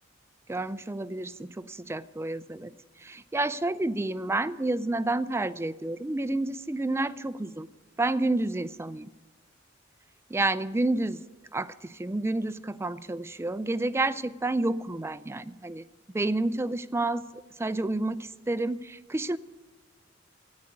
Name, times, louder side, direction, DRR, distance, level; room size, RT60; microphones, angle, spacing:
voice 1, 0.5-2.7 3.0-7.7 8.0-9.1 10.3-11.2 11.5-15.8 16.1-17.2 17.6-19.4, right 2 dB, 15° right, 16 dB, 0.4 m, -29 dB
13.5 x 9.7 x 9.5 m, 1.2 s
head